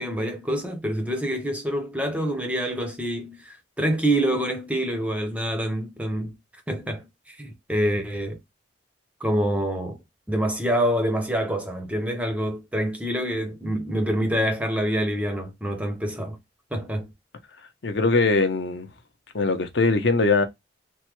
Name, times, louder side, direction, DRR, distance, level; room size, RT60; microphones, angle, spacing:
voice 1, 0.0-6.3 6.7-8.4 9.2-10.0 10.3-16.4 16.7-17.1, right 1 dB, 5° right, 0.5 m, -26 dB
voice 2, 17.8-18.9 19.3-20.4, left 3 dB, 60° left, 0.6 m, -21 dB
3.6 x 2.1 x 2.9 m
head